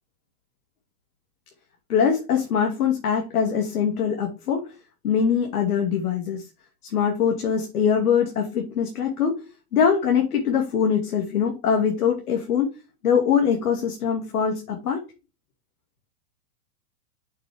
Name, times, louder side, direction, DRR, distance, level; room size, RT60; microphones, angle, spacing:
voice 1, 1.9-4.7 5.0-6.5 6.8-9.4 9.7-12.7 13.0-15.0, left 7 dB, 80° left, 2 dB, 2.6 m, -23 dB
8.3 x 6.6 x 3.6 m, 0.30 s
supercardioid pair, 180°, 44 cm